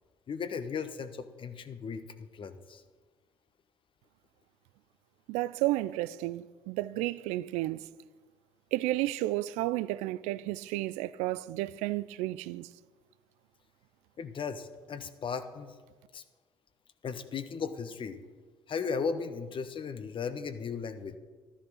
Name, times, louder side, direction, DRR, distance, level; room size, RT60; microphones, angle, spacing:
voice 1, 0.3-2.8 14.2-15.7 16.1-16.2 17.0-18.2 18.7-21.2, left 5 dB, 45° left, 1.2 m, -36 dB
voice 2, 5.3-7.9 8.7-12.7, right 17 dB, 70° right, 0.4 m, -32 dB
13.0 x 11.5 x 6.4 m
hypercardioid pair, 55°, 12 cm